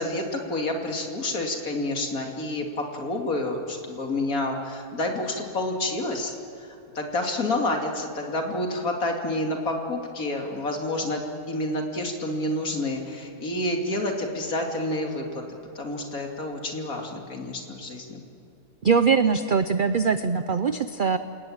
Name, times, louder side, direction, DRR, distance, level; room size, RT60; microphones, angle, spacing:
voice 1, 0.0-6.3 6.9-11.2 11.5-15.4 15.7-18.2, left 1 dB, 65° left, 2 dB, 3.2 m, -29 dB
voice 2, 18.8-21.2, right 5 dB, 45° right, 11 dB, 0.7 m, -22 dB
29.5 x 18.5 x 8.8 m, 2.9 s
omnidirectional pair, 1.6 m